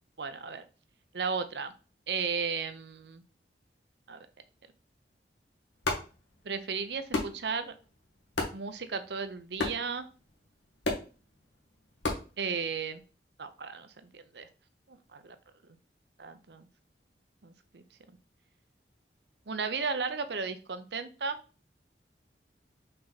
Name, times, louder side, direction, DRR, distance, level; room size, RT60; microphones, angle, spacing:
voice 1, 0.2-0.6 1.1-1.7 2.1-3.2 4.1-4.3 6.4-7.7 8.5-10.1 12.4-13.0 13.4-14.5 14.9-15.4 16.2-16.7 17.4-17.8 19.5-21.4, right 5 dB, 70° right, 10 dB, 0.7 m, -35 dB
sound 1, 5.7-13.1, left 2 dB, 85° left, 1.7 m, -38 dB
5.5 x 4.1 x 4.0 m, 0.35 s
head